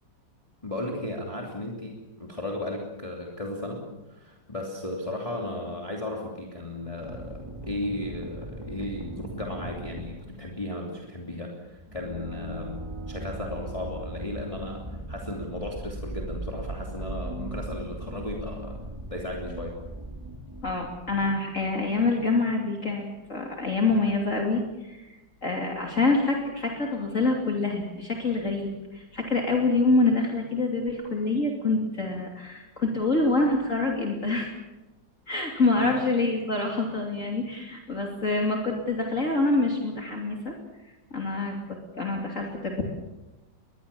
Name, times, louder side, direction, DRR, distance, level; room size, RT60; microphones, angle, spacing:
voice 1, 0.6-12.8 13.1-18.8 19.1-19.8 35.8-36.0, left 1 dB, 15° left, -1 dB, 3.0 m, -35 dB
sound 1, 7.0-10.7 11.7-21.3, right 2 dB, 15° right, 1.9 m, -39 dB
voice 2, 20.6-25.1 25.4-34.6 35.3-40.5 41.1-42.8, left 3 dB, 45° left, 0 dB, 3.2 m, -26 dB
22.0 x 21.5 x 7.1 m, 1.0 s
omnidirectional pair, 2.0 m